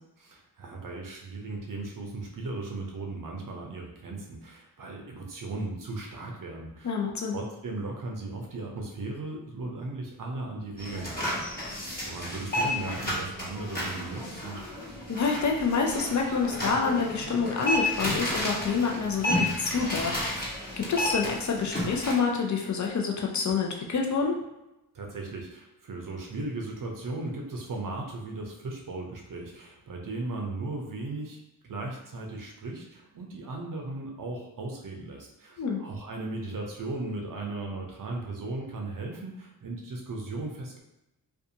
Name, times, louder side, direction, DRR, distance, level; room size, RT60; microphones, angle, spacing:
voice 1, 0.2-7.0 7.3-11.7 12.0-14.6 24.9-40.8, right 2 dB, 55° right, 0 dB, 0.6 m, -37 dB
voice 2, 6.8-7.4 15.1-20.5 20.8-24.4 35.6-35.8, left 5 dB, 45° left, 1 dB, 0.6 m, -27 dB
sound 1, 10.8-22.1, left 1 dB, 25° left, 1.2 m, -32 dB
2.5 x 2.3 x 2.7 m, 0.92 s
cardioid pair, 40°, 40 cm